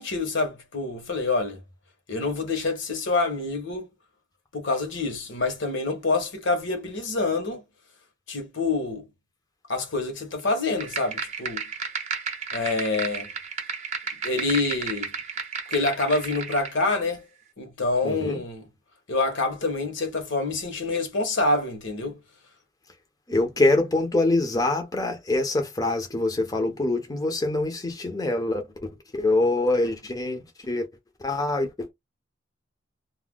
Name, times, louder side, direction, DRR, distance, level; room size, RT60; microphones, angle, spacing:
voice 1, 0.0-1.6 2.1-3.9 4.5-7.6 8.3-9.1 9.7-11.6 12.5-13.3 14.2-15.1 15.7-17.3 17.6-18.6 19.1-22.2, left 3 dB, 65° left, 0.9 m, -26 dB
sound 1, 10.8-16.8, right 5 dB, 35° right, 0.7 m, -33 dB
voice 2, 18.0-18.4 23.3-30.9 31.2-31.9, left 2 dB, 20° left, 0.5 m, -25 dB
2.3 x 2.1 x 3.4 m
head